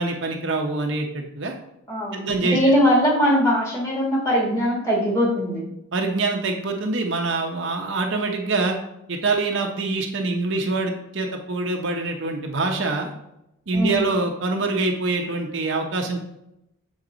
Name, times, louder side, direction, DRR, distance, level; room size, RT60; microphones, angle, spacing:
voice 1, 0.0-1.5 2.1-2.7 5.9-8.8 9.1-13.1 13.7-16.2, right 3 dB, 60° right, 2 dB, 0.8 m, -25 dB
voice 2, 1.9-5.6 13.7-14.0, equal, 15° left, -3 dB, 1.7 m, -21 dB
7.5 x 4.0 x 3.9 m, 0.82 s
head